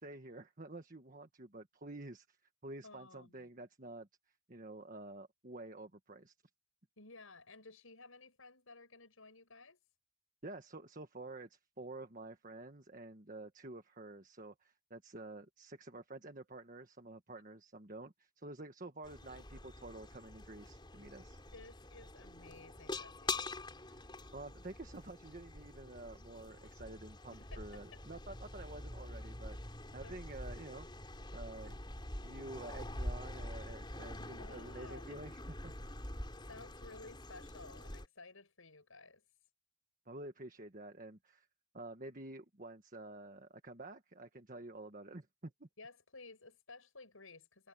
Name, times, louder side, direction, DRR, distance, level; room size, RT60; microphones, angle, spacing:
voice 1, 0.0-2.4 2.6-4.1 4.5-6.3 10.4-21.4 23.8-29.6 29.9-30.9 31.3-31.7 32.2-35.7 40.0-41.5 41.7-45.7, right 2 dB, 40° right, 1.5 m, -49 dB
voice 2, 2.8-3.5 7.0-9.8 21.5-23.5 27.3-28.0 28.3-28.4 30.0-30.2 34.2-35.2 36.5-39.2 45.8-47.7, left 3 dB, 90° left, 6.9 m, -55 dB
sound 1, 19.0-38.1, left 2 dB, 25° left, 4.2 m, -46 dB
head